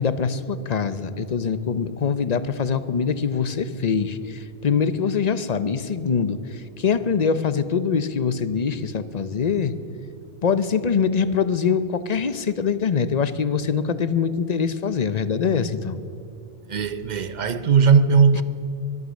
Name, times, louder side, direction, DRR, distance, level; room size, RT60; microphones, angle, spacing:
voice 1, 0.0-6.4 6.8-9.8 10.4-16.0, left 6 dB, 45° left, 0.7 m, -23 dB
voice 2, 16.7-18.4, right 6 dB, 45° right, 0.8 m, -18 dB
23.0 x 9.7 x 6.3 m
omnidirectional pair, 1.1 m